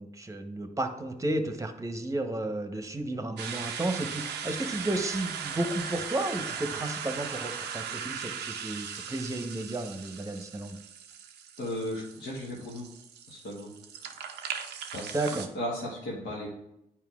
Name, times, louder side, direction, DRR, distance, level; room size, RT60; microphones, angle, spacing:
voice 1, 0.0-10.8 15.1-15.5, right 1 dB, 20° right, 7 dB, 0.9 m, -33 dB
sound 1, 3.4-15.5, right 7 dB, 90° right, 0.6 m, -38 dB
voice 2, 11.6-12.9 13.3-13.7 14.9-16.5, left 1 dB, 75° left, -5 dB, 1.4 m, -36 dB
9.0 x 4.4 x 2.4 m, 0.82 s
supercardioid pair, 60°, 17 cm